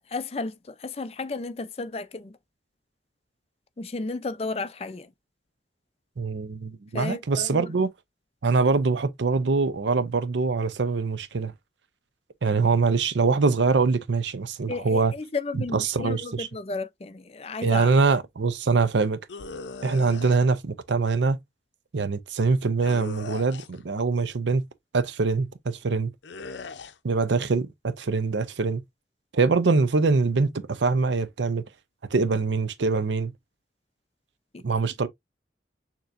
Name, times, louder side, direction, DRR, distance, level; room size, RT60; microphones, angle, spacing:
voice 1, 0.0-2.4 3.8-5.1 6.9-7.7 14.7-17.9 34.5-34.6, left 3 dB, 35° left, 0.4 m, -33 dB
voice 2, 6.2-7.9 8.4-11.5 12.4-15.1 15.5-16.5 17.6-19.2 19.8-21.4 21.9-24.6 24.9-26.1 27.0-28.8 29.3-31.6 32.1-33.3 34.6-35.1, right 4 dB, 85° right, 0.6 m, -23 dB
sound 1, 19.3-20.4 22.8-23.8 26.2-26.9, left 4 dB, 85° left, 0.6 m, -39 dB
6.6 x 2.9 x 2.5 m
head